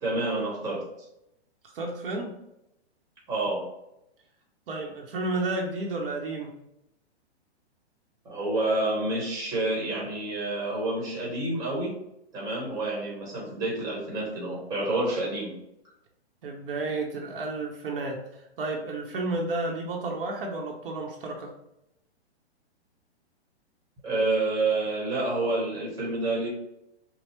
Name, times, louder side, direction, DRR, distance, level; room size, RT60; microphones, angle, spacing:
voice 1, 0.0-0.8 3.3-3.7 8.2-11.9 12.3-15.5 24.0-26.5, right 2 dB, 10° right, -4 dB, 1.1 m, -28 dB
voice 2, 1.7-2.3 4.7-6.5 16.4-21.5, right 2 dB, 55° right, 0 dB, 0.8 m, -32 dB
5.3 x 2.0 x 3.0 m, 0.84 s
hypercardioid pair, 155°, 34 cm